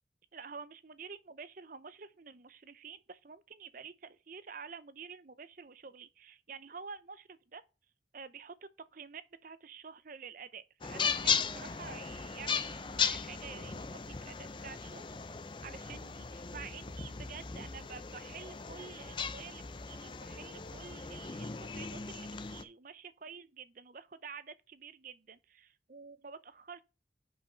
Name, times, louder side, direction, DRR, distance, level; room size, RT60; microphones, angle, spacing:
voice 1, 0.3-7.6 8.1-26.8, right 6 dB, 45° right, 0.6 m, -49 dB
sound 1, 10.8-22.6, left 6 dB, 25° left, 0.5 m, -37 dB
5.7 x 5.1 x 5.7 m
head